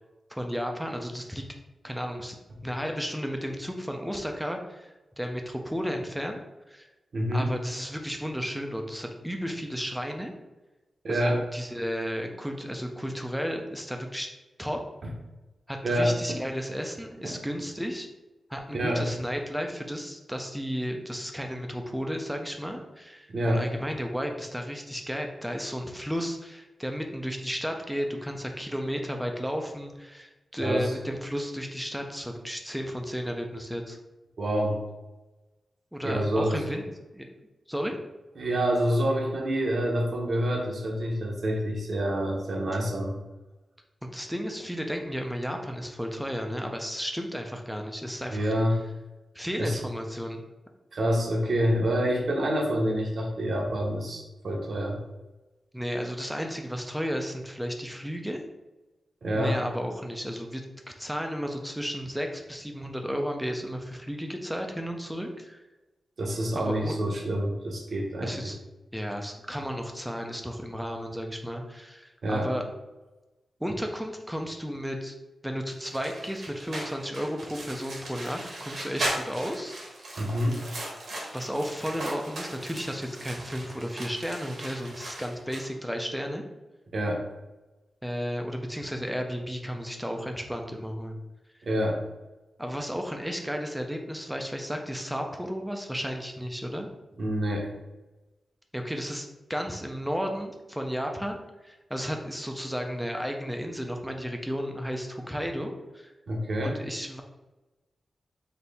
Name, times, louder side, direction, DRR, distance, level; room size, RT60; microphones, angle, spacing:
voice 1, 0.3-1.5 1.8-2.4 2.6-6.4 6.7-6.9 7.3-10.3 11.1-14.3 14.6-14.8 15.7-18.1 18.5-34.0 35.9-36.8 37.1-37.3 37.7-37.9 44.0-48.5 49.3-50.4 55.7-58.4 59.3-60.6 61.0-65.6 66.5-67.1 68.2-68.6 68.9-72.7 73.6-75.2 75.4-79.8 81.3-86.4 88.0-91.2 92.6-96.9 98.7-106.1 106.6-107.2, equal, ahead, 3 dB, 0.5 m, -33 dB
voice 2, 7.1-7.5 11.0-11.4 15.8-16.4 17.2-17.4 18.7-19.1 23.3-23.6 30.6-30.9 34.4-34.8 36.0-36.6 38.4-43.2 48.3-48.8 49.6-49.8 50.9-55.0 59.2-59.6 66.2-68.3 72.2-72.5 80.2-80.5 86.9-87.2 91.6-92.0 97.2-97.7 106.3-106.7, equal, 55° right, 0 dB, 0.8 m, -27 dB
sound 1, 75.8-85.7, right 1 dB, 70° right, 1.2 m, -38 dB
4.2 x 2.8 x 3.4 m, 1.1 s
wide cardioid pair, 150°, 0 cm